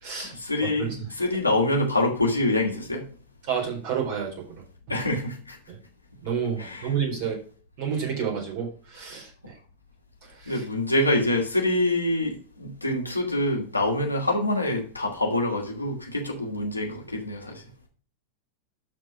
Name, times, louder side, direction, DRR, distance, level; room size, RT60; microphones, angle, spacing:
voice 1, 0.2-3.1 4.9-5.6 6.6-6.9 10.5-17.6, left 1 dB, 85° left, 0 dB, 2.5 m, -26 dB
voice 2, 3.5-4.3 6.2-7.4 7.8-8.7 8.9-9.3 10.5-10.6, right 7 dB, 45° right, 0 dB, 4.0 m, -29 dB
12.0 x 4.6 x 5.1 m, 0.41 s
figure-of-eight pair, 90°, 0 cm